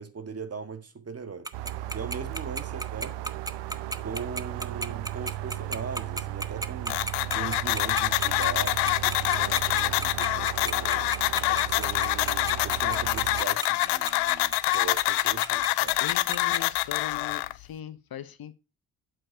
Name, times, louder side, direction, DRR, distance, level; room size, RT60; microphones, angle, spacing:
voice 1, 0.0-1.5 1.9-3.2 4.0-7.0 7.3-11.1 11.5-16.0, right 5 dB, 30° right, 1.8 m, -39 dB
Tick-tock, 1.4-16.6, right 2 dB, 10° right, 1.0 m, -33 dB
sound 1, 1.5-13.4, right 14 dB, 65° right, 0.8 m, -36 dB
sound 2, 6.9-17.5, left 19 dB, 70° left, 0.6 m, -26 dB
voice 2, 16.0-18.5, left 10 dB, 50° left, 1.2 m, -39 dB
8.8 x 7.6 x 5.0 m
hypercardioid pair, 45°, 47 cm